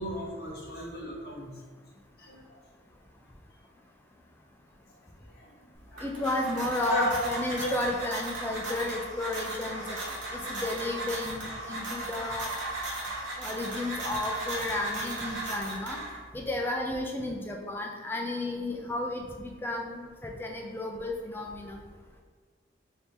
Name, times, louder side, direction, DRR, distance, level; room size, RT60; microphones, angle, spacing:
voice 1, 0.0-1.6 2.2-2.6 5.2-5.5 5.9-6.1 6.8-7.2 7.5-7.7, equal, 55° left, -3 dB, 1.0 m, -34 dB
sound 1, 5.8-16.4, right 2 dB, 85° right, 1.2 m, -36 dB
voice 2, 6.0-10.0 10.3-12.5 13.4-16.0 16.3-21.8, left 2 dB, 10° left, 1 dB, 0.4 m, -33 dB
3.4 x 2.7 x 4.4 m, 1.5 s
head